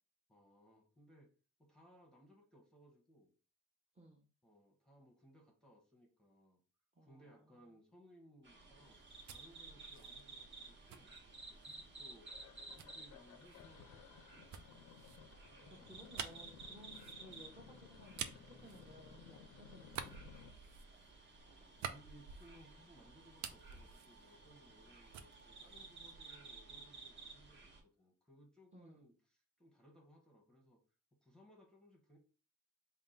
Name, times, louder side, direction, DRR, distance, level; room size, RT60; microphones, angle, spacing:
voice 1, 0.3-1.3 1.6-3.3 4.4-6.6 7.0-11.1 11.5-12.4 12.7-14.5 15.5-16.1 16.8-17.0 21.4-30.8 31.2-32.2, equal, ahead, 0 dB, 1.0 m, -64 dB
voice 2, 7.0-7.7 15.8-20.1 28.7-29.0, equal, 20° right, 1 dB, 0.9 m, -59 dB
sound 1, 8.4-27.8, right 3 dB, 40° right, 1.2 m, -56 dB
sound 2, 8.9-11.9 12.8-19.4 19.8-22.9 23.2-24.9 25.1-26.4, right 8 dB, 65° right, 0.5 m, -50 dB
sound 3, 11.4-11.9 12.3-20.5, left 9 dB, 65° left, 0.5 m, -59 dB
3.6 x 2.3 x 3.9 m, 0.36 s
cardioid pair, 90°, 30 cm